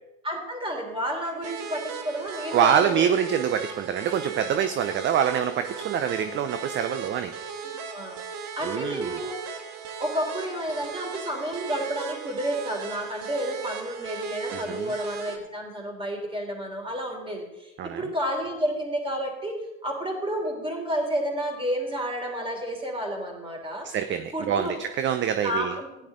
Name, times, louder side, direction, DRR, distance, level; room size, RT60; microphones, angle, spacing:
voice 1, 0.2-3.0 6.2-6.3 7.6-8.2 8.6-9.3 10.0-23.9 24.3-24.8 25.4-25.9, equal, 10° right, 2 dB, 3.5 m, -30 dB
sound 1, 1.4-15.4, right 6 dB, 55° right, 1.5 m, -37 dB
voice 2, 2.5-7.3 8.6-9.1 14.5-14.9 17.8-18.0 23.8-25.7, right 8 dB, 30° right, 10 dB, 0.6 m, -25 dB
15.0 x 10.0 x 3.8 m, 0.97 s
hypercardioid pair, 80°, 42 cm